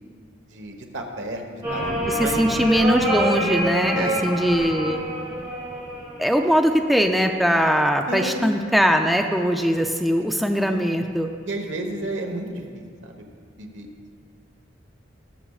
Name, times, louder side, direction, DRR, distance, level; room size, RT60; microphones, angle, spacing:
voice 1, 0.5-1.4 1.7-2.4 3.9-4.4 8.1-8.4 11.4-12.6 13.0-13.1 13.6-13.9, right 2 dB, 90° right, 3 dB, 1.2 m, -31 dB
sound 1, 1.6-6.7 7.8-8.3, right 1 dB, 20° right, 2.8 m, -27 dB
voice 2, 2.1-5.0 6.2-11.3, equal, ahead, 4 dB, 0.4 m, -21 dB
20.0 x 7.2 x 2.4 m, 2.3 s
head